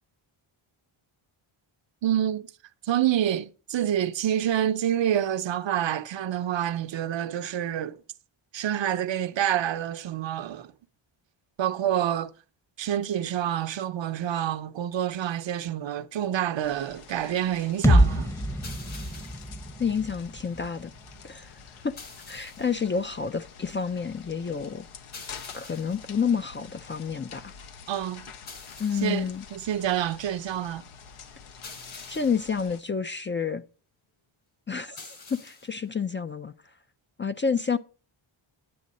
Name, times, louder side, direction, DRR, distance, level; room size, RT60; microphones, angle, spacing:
voice 1, 2.0-2.5 2.8-8.0 8.5-10.7 11.6-12.3 12.8-18.3 27.9-28.2 29.0-30.8, right 11 dB, 60° right, 0.7 m, -27 dB
sound 1, 16.6-32.8, left 6 dB, 80° left, 1.0 m, -48 dB
sound 2, 17.8-21.7, equal, 5° left, 0.8 m, -26 dB
sound 3, 18.6-19.6 22.0-22.8 25.1-26.1 28.5-29.3 31.6-32.6 35.0-35.8, left 4 dB, 60° left, 4.3 m, -45 dB
voice 2, 19.8-20.9 21.2-21.9 22.3-24.9 25.5-27.5 28.8-29.4 32.1-33.6 34.7-35.0 35.3-36.5 37.2-37.8, left 6 dB, 25° left, 0.4 m, -29 dB
9.5 x 8.6 x 4.1 m
cardioid pair, 75°, 49 cm